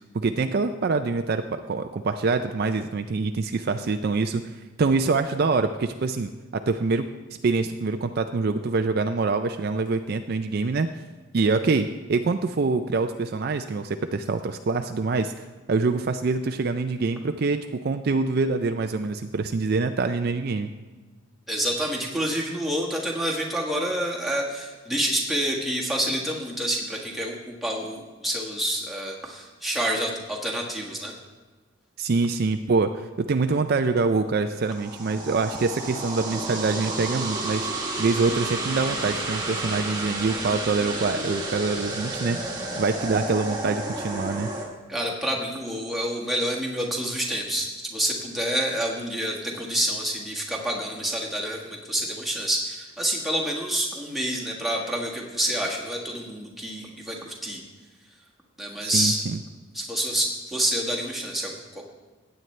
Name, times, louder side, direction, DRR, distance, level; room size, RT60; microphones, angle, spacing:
voice 1, 0.1-7.1 7.4-10.9 11.3-15.3 15.7-20.7 32.0-42.4 42.8-44.5 58.8-59.4, right 4 dB, 50° right, 7 dB, 0.4 m, -25 dB
voice 2, 21.5-31.1 44.9-57.6 58.6-59.2 59.7-61.8, right 1 dB, ahead, -3 dB, 1.5 m, -28 dB
sound 1, 34.6-44.7, right 2 dB, 20° right, 1.4 m, -31 dB
16.0 x 9.0 x 3.2 m, 1.3 s
head